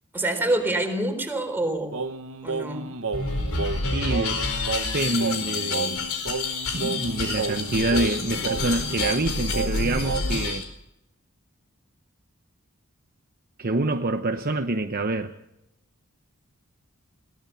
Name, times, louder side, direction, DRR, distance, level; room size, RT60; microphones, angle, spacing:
voice 1, 0.1-1.9 2.4-2.9, right 1 dB, 10° right, 4 dB, 4.1 m, -26 dB
Singing, 1.9-10.5, right 4 dB, 65° right, 1.2 m, -32 dB
sound 1, 3.1-10.6, left 3 dB, 70° left, 4.6 m, -28 dB
voice 2, 3.9-4.4 4.9-6.1 6.7-10.6 13.6-15.3, right 2 dB, 45° right, 6 dB, 1.0 m, -26 dB
22.0 x 18.0 x 7.0 m, 0.85 s
head